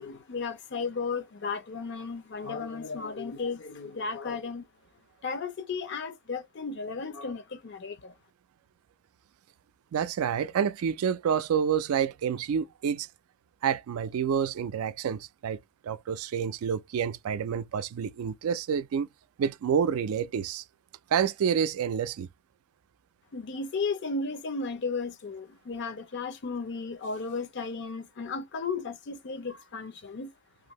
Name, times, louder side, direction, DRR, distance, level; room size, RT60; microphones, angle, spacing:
voice 1, 0.0-4.6 5.2-8.1 23.3-30.3, left 4 dB, 55° left, 0.5 m, -34 dB
voice 2, 9.9-13.1 13.6-19.1 19.4-20.6 21.1-22.3, right 7 dB, 85° right, 0.3 m, -28 dB
2.6 x 2.5 x 2.9 m
head